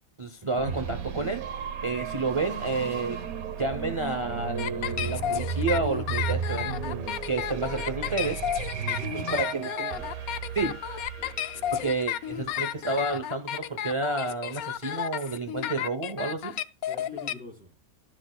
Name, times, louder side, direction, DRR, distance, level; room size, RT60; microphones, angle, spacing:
voice 1, 0.2-1.4 1.8-3.2 3.6-8.4 9.4-9.7 10.5-10.8 11.7-16.5, right 3 dB, 30° right, 0.6 m, -30 dB
sound 1, 0.6-13.3, right 6 dB, 70° right, 1.4 m, -35 dB
sound 2, 4.6-17.3, left 11 dB, 75° left, 1.1 m, -32 dB
voice 2, 8.7-10.2 11.3-11.8 16.9-17.8, left 3 dB, 5° right, 4.2 m, -45 dB
12.5 x 10.5 x 2.3 m
omnidirectional pair, 1.6 m